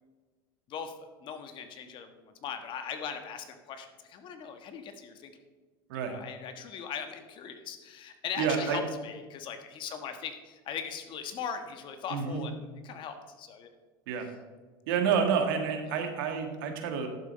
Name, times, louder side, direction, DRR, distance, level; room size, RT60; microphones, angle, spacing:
voice 1, 1.2-2.1 2.4-5.3 6.1-13.7 15.9-16.0, left 7 dB, 45° left, 8 dB, 1.4 m, -39 dB
voice 2, 8.4-8.8 12.1-12.5 14.1-14.3 14.9-17.1, right 6 dB, 80° right, 5 dB, 1.7 m, -29 dB
11.5 x 7.5 x 4.2 m, 1.3 s
supercardioid pair, 115°, 11 cm